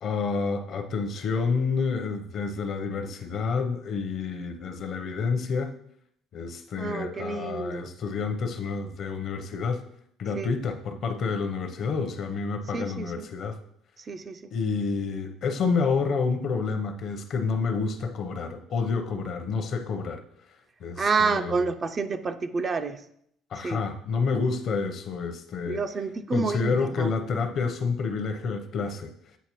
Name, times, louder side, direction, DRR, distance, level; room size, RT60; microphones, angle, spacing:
voice 1, 0.0-5.7 6.3-9.8 10.2-13.6 14.5-20.2 20.8-21.7 23.5-25.8 26.3-29.1, left 4 dB, 45° left, 6 dB, 0.7 m, -29 dB
voice 2, 6.8-7.9 10.4-10.5 12.7-13.3 14.1-14.4 21.0-23.0 23.6-23.8 25.7-27.1, right 4 dB, 25° right, 9 dB, 0.3 m, -29 dB
8.1 x 4.3 x 3.0 m, 0.69 s
cardioid pair, 135°, 0 cm